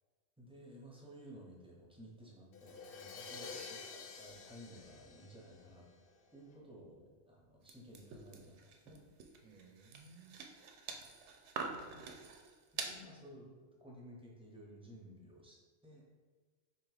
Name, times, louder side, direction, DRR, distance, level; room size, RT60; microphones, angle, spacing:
voice 1, 0.4-5.9 6.3-9.0 11.8-11.9 12.8-16.1, equal, 5° right, -2 dB, 0.6 m, -55 dB
Crash cymbal, 2.5-6.3, left 5 dB, 65° left, 0.7 m, -50 dB
voice 2, 3.1-3.5 9.4-10.4 11.5-12.1, right 3 dB, 50° right, 2 dB, 0.6 m, -60 dB
sound 1, 7.7-13.0, right 5 dB, 85° right, 0.9 m, -46 dB
3.8 x 2.9 x 4.8 m, 1.4 s
omnidirectional pair, 1.2 m